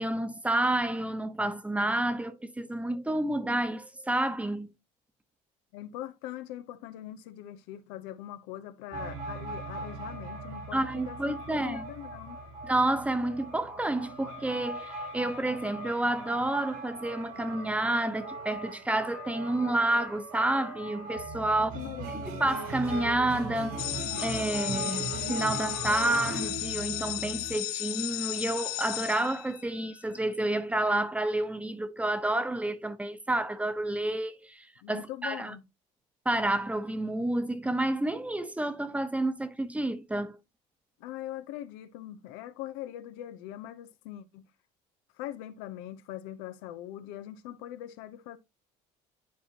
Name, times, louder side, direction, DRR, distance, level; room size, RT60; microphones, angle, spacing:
voice 1, 0.0-4.7 10.7-11.8 12.6-21.7 22.1-23.8 24.2-35.5 36.2-40.4, right 1 dB, 10° right, 1.0 m, -29 dB
voice 2, 5.7-12.4 21.6-22.5 34.8-35.6 41.0-44.5 45.2-48.4, left 13 dB, 90° left, 0.8 m, -42 dB
sound 1, 8.9-27.6, right 2 dB, 80° right, 3.5 m, -39 dB
sound 2, 23.8-29.9, left 18 dB, 75° left, 0.4 m, -35 dB
10.5 x 4.4 x 2.9 m
cardioid pair, 105°, 16 cm